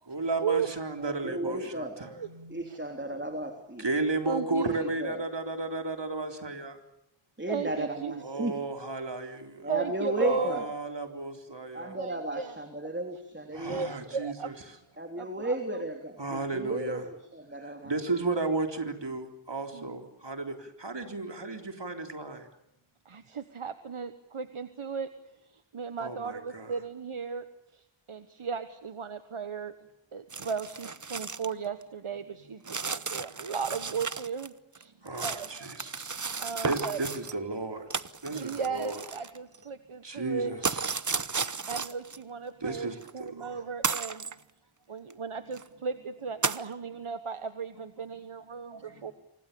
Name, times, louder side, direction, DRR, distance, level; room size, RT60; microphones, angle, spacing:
voice 1, 0.1-2.6 3.8-6.8 8.2-9.7 10.2-11.9 13.5-14.8 16.2-17.0 17.8-22.4 26.0-26.8 35.0-36.1 36.6-37.9 38.2-39.0 40.0-41.0 42.6-43.6 46.8-46.9 48.7-49.0, right 3 dB, 60° right, 5 dB, 4.0 m, -34 dB
voice 2, 1.0-2.0 2.5-3.8 4.6-5.2 7.4-8.6 9.6-10.7 11.7-13.9 15.0-17.9, right 1 dB, 25° right, 5 dB, 3.5 m, -34 dB
voice 3, 4.3-4.6 7.5-8.4 9.7-10.6 12.0-12.5 13.7-14.5 15.2-15.8 19.7-19.9 23.1-25.1 25.7-27.4 28.1-29.7 30.1-34.9 35.2-35.5 36.4-37.0 38.3-40.5 41.7-42.9 43.1-44.2 44.9-49.1, right 5 dB, 85° right, 10 dB, 1.4 m, -35 dB
sound 1, 30.3-31.5 31.8-31.9 32.7-34.5 34.8-37.3 37.9-39.6 40.6-42.2 43.0-43.1 43.8-44.4 45.1-45.2 45.5-45.7 46.4-46.7, right 5 dB, 40° right, 0.9 m, -34 dB
28.0 x 25.0 x 7.0 m, 0.81 s
wide cardioid pair, 55°, 48 cm